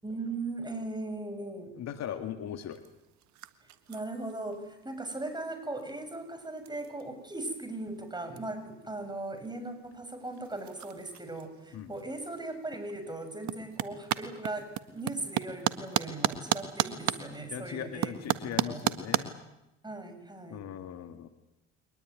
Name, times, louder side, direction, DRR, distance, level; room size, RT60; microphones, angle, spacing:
voice 1, 0.0-1.7 3.9-18.4 18.7-18.8 19.8-20.7, right 2 dB, 10° right, 8 dB, 7.1 m, -38 dB
voice 2, 1.7-2.8 11.7-11.9 17.5-19.4 20.5-21.3, left 10 dB, 45° left, 8 dB, 2.2 m, -39 dB
sound 1, 2.7-19.2, right 13 dB, 50° right, 1.7 m, -37 dB
23.5 x 20.0 x 9.6 m, 0.89 s
hypercardioid pair, 70°, 35 cm